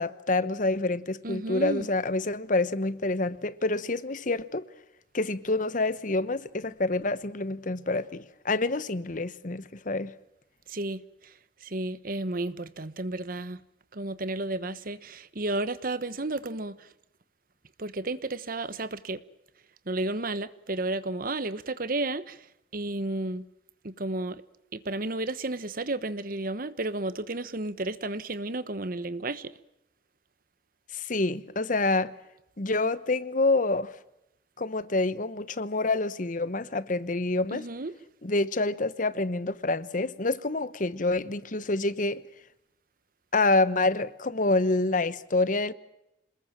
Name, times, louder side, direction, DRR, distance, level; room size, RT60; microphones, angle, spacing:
voice 1, 0.0-4.6 5.1-10.1 30.9-32.1 32.6-33.9 34.6-37.7 38.2-42.2 43.3-45.7, left 2 dB, 45° left, 1.0 m, -27 dB
voice 2, 1.2-1.9 10.7-11.0 11.6-13.6 13.9-16.8 17.8-19.2 19.9-22.4 22.7-23.4 23.8-24.4 24.7-29.5 37.5-37.9, right 2 dB, 50° right, 1.2 m, -32 dB
27.5 x 20.5 x 7.4 m
head